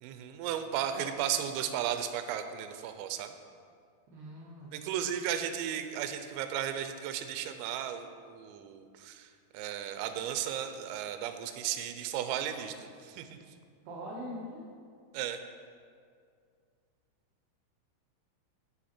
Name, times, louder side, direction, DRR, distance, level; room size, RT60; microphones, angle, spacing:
voice 1, 0.0-3.4 4.7-13.4 15.1-15.4, right 9 dB, 85° right, 8 dB, 3.3 m, -35 dB
voice 2, 4.1-4.7 13.9-14.6, equal, 65° right, -6 dB, 2.9 m, -42 dB
11.0 x 7.3 x 4.4 m, 2.2 s
omnidirectional pair, 5.9 m